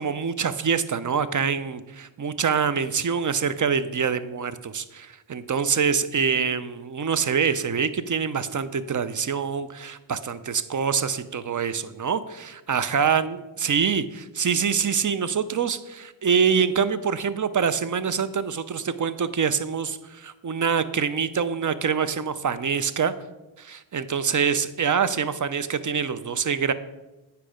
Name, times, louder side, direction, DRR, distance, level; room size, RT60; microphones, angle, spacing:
voice 1, 0.0-23.1 23.6-26.7, right 6 dB, 40° right, 14 dB, 0.6 m, -25 dB
8.2 x 5.6 x 5.1 m, 1.1 s
cardioid pair, 55°, 48 cm